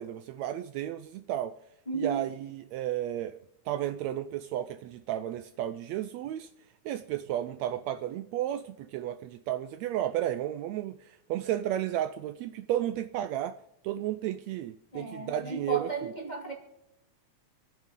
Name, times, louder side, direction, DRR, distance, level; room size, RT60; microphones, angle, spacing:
voice 1, 0.0-1.6 1.9-3.4 3.7-6.5 6.9-13.6 13.8-15.9, right 12 dB, 75° right, 1.7 m, -33 dB
voice 2, 1.9-2.3 14.9-16.5, right 4 dB, 15° left, 2.2 m, -34 dB
27.0 x 9.1 x 3.7 m
omnidirectional pair, 3.4 m